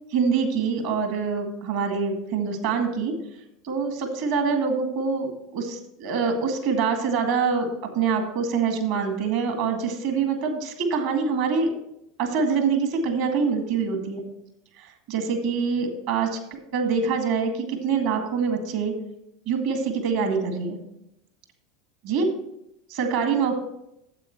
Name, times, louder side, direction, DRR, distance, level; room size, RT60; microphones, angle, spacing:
voice 1, 0.1-3.1 3.6-7.7 8.0-11.7 12.2-14.2 14.8-16.4 16.7-18.9 19.5-20.8 22.0-22.3 22.9-23.6, right 5 dB, 65° right, 5 dB, 2.0 m, -25 dB
9.1 x 7.8 x 4.5 m, 0.81 s
figure-of-eight pair, 80°, 0 cm